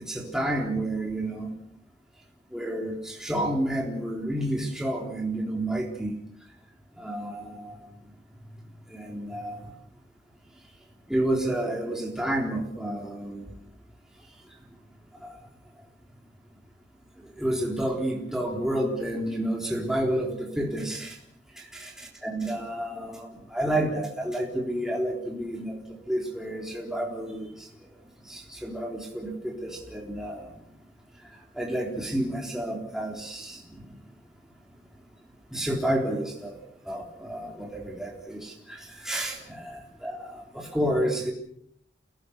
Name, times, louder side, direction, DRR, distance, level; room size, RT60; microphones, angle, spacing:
voice 1, 0.0-1.5 2.5-6.1 7.0-7.9 8.9-9.7 11.1-13.5 15.2-15.4 17.4-21.2 21.6-27.7 28.2-30.5 31.6-33.9 35.5-36.5 36.9-41.3, right 1 dB, 5° right, -1 dB, 3.7 m, -30 dB
29.0 x 17.5 x 6.6 m, 0.70 s
head